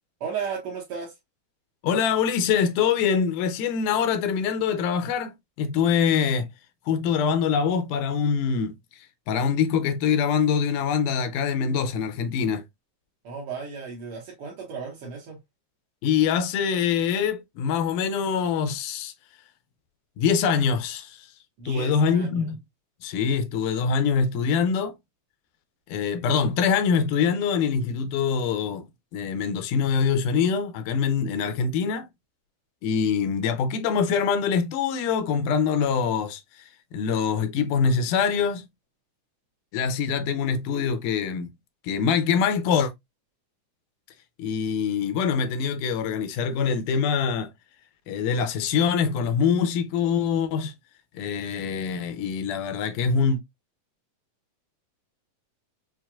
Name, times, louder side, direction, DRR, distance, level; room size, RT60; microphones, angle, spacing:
voice 1, 0.2-1.2 13.2-15.4 21.6-22.5, right 6 dB, 60° right, 1.6 m, -35 dB
voice 2, 1.8-6.5 6.9-8.7 9.3-12.6 16.0-19.1 20.2-21.3 21.7-22.6 23.0-25.0 25.9-28.9 29.1-32.1 32.8-36.4 36.9-38.7 39.7-41.5 41.8-42.9 44.4-47.5 48.1-50.7 51.1-53.4, left 6 dB, 85° left, 2.1 m, -24 dB
5.9 x 2.5 x 2.2 m
omnidirectional pair, 3.6 m